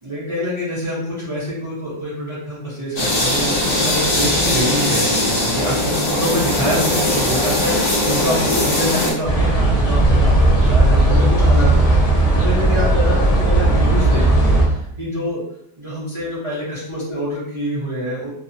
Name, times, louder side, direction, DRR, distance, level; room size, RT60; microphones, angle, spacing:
voice 1, 0.0-15.4 15.8-18.3, equal, 30° right, -10 dB, 0.5 m, -26 dB
sound 1, 3.0-9.1, left 1 dB, 70° left, 0.4 m, -19 dB
sound 2, 9.2-14.6, right 2 dB, 25° left, 1.0 m, -15 dB
3.1 x 2.0 x 2.6 m, 0.76 s
omnidirectional pair, 1.8 m